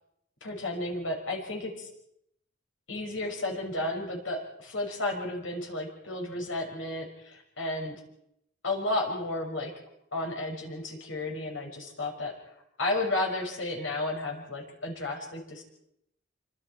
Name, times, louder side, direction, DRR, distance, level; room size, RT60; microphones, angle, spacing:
voice 1, 0.4-1.9 2.9-8.0 8.6-9.7 10.1-12.3 12.8-15.6, left 2 dB, 80° left, 3 dB, 6.1 m, -32 dB
27.0 x 25.0 x 4.6 m, 0.78 s
head